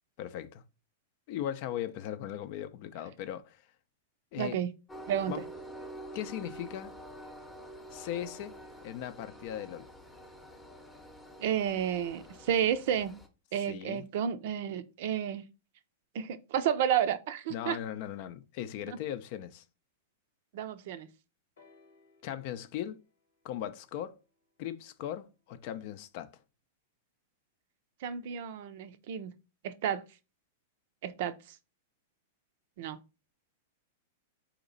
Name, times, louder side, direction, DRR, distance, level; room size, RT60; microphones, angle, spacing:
voice 1, 0.2-0.6 1.3-3.6 4.3-4.6 5.3-5.4 6.1-7.0 7.9-8.5 8.8-9.9 13.7-14.0 17.5-19.6 22.2-23.0 23.4-24.2 24.6-26.3, left 11 dB, 55° left, 0.5 m, -38 dB
voice 2, 4.4-4.7 5.1-5.4 11.4-13.2 13.5-15.5 16.1-17.8 18.9-19.0 20.5-21.1 28.0-29.3 29.6-30.2 31.0-31.6 32.8-33.0, right 9 dB, 60° right, 0.5 m, -31 dB
Train, 4.9-13.3, right 1 dB, 10° left, 0.7 m, -47 dB
sound 1, 21.6-25.4 26.3-26.4, left 4 dB, 80° left, 0.9 m, -66 dB
4.0 x 2.9 x 3.9 m
hypercardioid pair, 115°, 0 cm